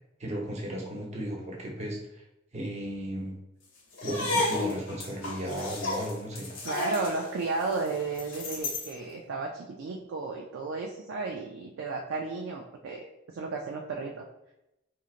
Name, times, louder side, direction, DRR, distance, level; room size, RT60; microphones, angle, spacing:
voice 1, 0.2-2.2 2.5-3.3 4.0-6.5, right 1 dB, 35° right, -2 dB, 0.8 m, -35 dB
sound 1, 3.9-8.9, left 2 dB, 85° left, 0.9 m, -32 dB
voice 2, 6.6-14.2, right 3 dB, 85° right, 0 dB, 0.4 m, -33 dB
3.7 x 3.1 x 2.4 m, 0.89 s
head